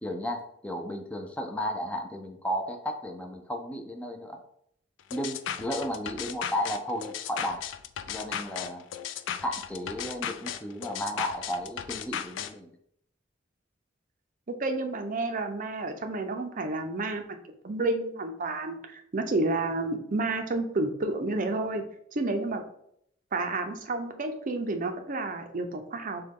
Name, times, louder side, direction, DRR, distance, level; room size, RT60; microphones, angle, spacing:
voice 1, 0.0-4.4 5.1-7.7 8.1-8.8 9.4-12.7, equal, 5° left, 3 dB, 0.5 m, -34 dB
sound 1, 5.1-12.5, left 9 dB, 70° left, 0.3 m, -36 dB
voice 2, 14.5-17.4 17.6-21.8 22.1-22.6 23.3-26.2, right 2 dB, 45° right, 6 dB, 0.5 m, -30 dB
6.5 x 2.3 x 3.6 m, 0.70 s
head